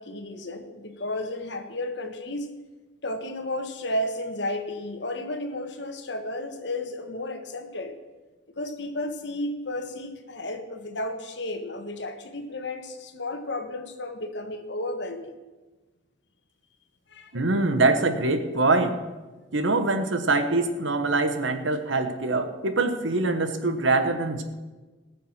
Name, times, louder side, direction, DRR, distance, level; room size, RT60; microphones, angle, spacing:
voice 1, 0.0-2.5 3.0-8.0 8.6-15.4 17.1-17.4, left 1 dB, 65° left, 7 dB, 1.4 m, -33 dB
voice 2, 17.3-18.9 19.5-24.4, right 3 dB, 85° right, 8 dB, 1.3 m, -24 dB
18.5 x 7.1 x 5.9 m, 1.2 s
head